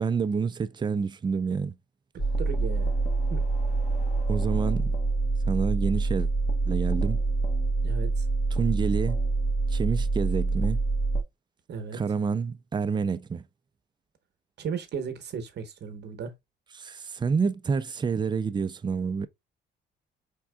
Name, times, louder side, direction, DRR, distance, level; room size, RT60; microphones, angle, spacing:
voice 1, 0.0-1.8 4.3-4.9 5.5-6.3 6.7-7.2 8.6-9.2 9.7-10.8 11.9-13.4 16.8-19.3, right 5 dB, 25° right, 0.4 m, -28 dB
sound 1, 2.2-11.2, right 3 dB, 35° left, 1.0 m, -26 dB
voice 2, 2.4-2.9 3.3-3.4 7.8-8.3 11.7-12.0 14.6-16.3, right 6 dB, 60° right, 1.0 m, -35 dB
4.5 x 3.6 x 2.2 m
cardioid pair, 90°, 20 cm